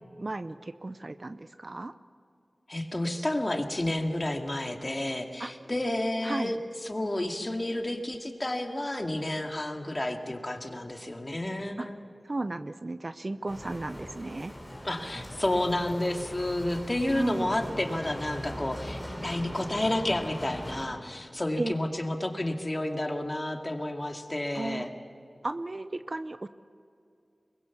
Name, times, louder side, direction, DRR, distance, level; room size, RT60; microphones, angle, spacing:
voice 1, 0.2-1.9 5.4-5.5 6.2-6.5 11.8-11.9 12.2-14.5 17.1-17.5 21.6-21.7 24.6-24.9 25.4-26.5, right 2 dB, 45° right, 12 dB, 0.6 m, -34 dB
voice 2, 2.7-12.0 14.8-24.9, left 1 dB, 30° left, 4 dB, 2.2 m, -31 dB
Bicycle, 13.5-20.9, equal, 5° left, 4.2 m, -40 dB
23.0 x 21.0 x 7.2 m, 2.6 s
wide cardioid pair, 55°, 0 cm